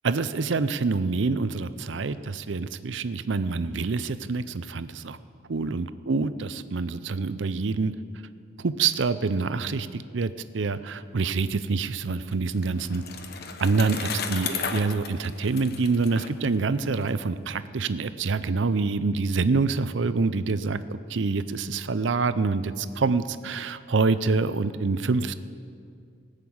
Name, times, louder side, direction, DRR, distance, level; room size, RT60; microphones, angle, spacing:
voice 1, 0.0-5.2 5.5-7.9 8.6-13.0 13.6-25.3, right 4 dB, 70° right, 13 dB, 0.6 m, -26 dB
Bicycle, 12.2-17.1, left 5 dB, 55° left, 0.9 m, -35 dB
18.0 x 6.6 x 8.7 m, 2.3 s
head